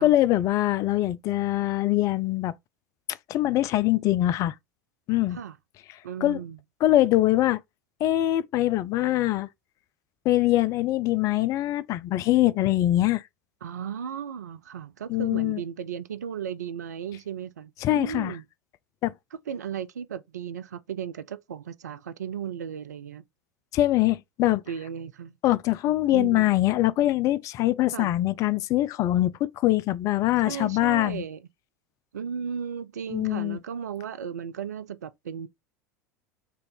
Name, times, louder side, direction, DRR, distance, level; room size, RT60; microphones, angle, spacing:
voice 1, 0.0-2.5 3.3-4.5 5.1-5.4 6.2-6.4 6.8-7.6 8.0-9.5 10.3-13.2 15.1-15.6 17.8-18.3 19.0-19.1 23.7-24.6 25.4-31.2 33.1-33.6, left 15 dB, 35° left, 0.4 m, -23 dB
voice 2, 6.0-6.6 13.6-18.4 19.5-23.2 24.7-25.3 26.1-26.5 27.9-28.1 30.4-31.4 32.1-35.5, right 8 dB, 75° right, 0.4 m, -35 dB
4.4 x 2.5 x 3.6 m
figure-of-eight pair, 80°, 9 cm